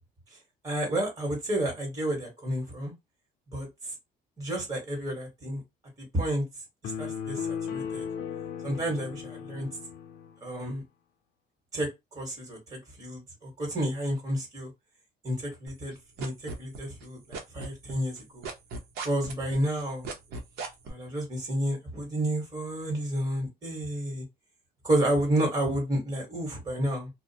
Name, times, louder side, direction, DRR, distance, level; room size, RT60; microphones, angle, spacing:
voice 1, 0.6-2.9 3.5-3.9 4.4-5.6 6.0-6.4 6.8-7.4 7.7-8.0 8.6-9.7 10.4-10.8 11.7-11.9 12.1-14.7 15.2-18.4 19.0-20.1 20.8-24.2 24.8-27.1, right 1 dB, 20° right, 1.1 m, -30 dB
sound 1, 6.8-10.4, left 7 dB, 75° left, 0.4 m, -36 dB
sound 2, 15.7-17.1 17.3-20.9, right 4 dB, 75° right, 0.7 m, -37 dB
2.4 x 2.0 x 2.6 m
cardioid pair, 110°, 17 cm